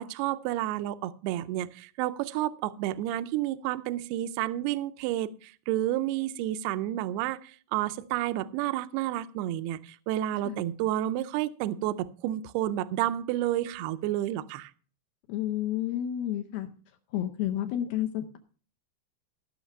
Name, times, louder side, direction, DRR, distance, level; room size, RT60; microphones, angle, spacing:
voice 1, 0.0-14.7, right 13 dB, 80° right, 12 dB, 2.4 m, -30 dB
voice 2, 15.3-16.7 17.1-18.4, left 12 dB, 75° left, 5 dB, 2.3 m, -30 dB
15.5 x 6.5 x 5.4 m, 0.42 s
omnidirectional pair, 5.2 m